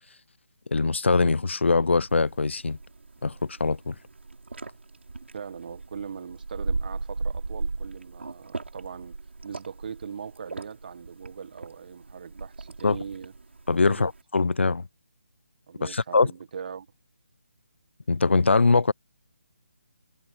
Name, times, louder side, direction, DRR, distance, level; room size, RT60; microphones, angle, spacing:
voice 1, 0.7-2.8 3.2-3.9 12.8-13.0 13.7-14.8 15.8-16.3 18.1-18.9, left 4 dB, 70° left, 0.8 m, -22 dB
sound 1, 2.1-14.2, right 3 dB, 70° right, 6.8 m, -37 dB
voice 2, 5.3-9.2 9.4-13.3 13.8-14.1 15.7-16.9, right 6 dB, 45° right, 1.5 m, -40 dB
figure-of-eight pair, 150°, 7 cm